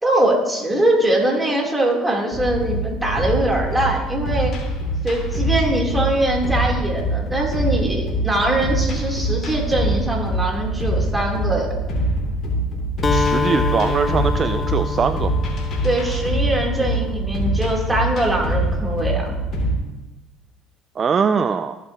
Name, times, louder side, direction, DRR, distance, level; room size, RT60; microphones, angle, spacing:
voice 1, 0.0-4.6 5.0-11.7 15.8-19.3, right 1 dB, 10° right, -1 dB, 3.2 m, -22 dB
sound 1, 2.3-19.8, right 1 dB, 50° left, 3.0 m, -24 dB
Acoustic guitar, 13.0-16.9, left 5 dB, 30° left, 0.4 m, -26 dB
voice 2, 13.1-15.3 21.0-21.8, right 6 dB, 40° right, 10 dB, 0.4 m, -21 dB
15.0 x 8.2 x 2.9 m, 1.1 s
hypercardioid pair, 70°, 0 cm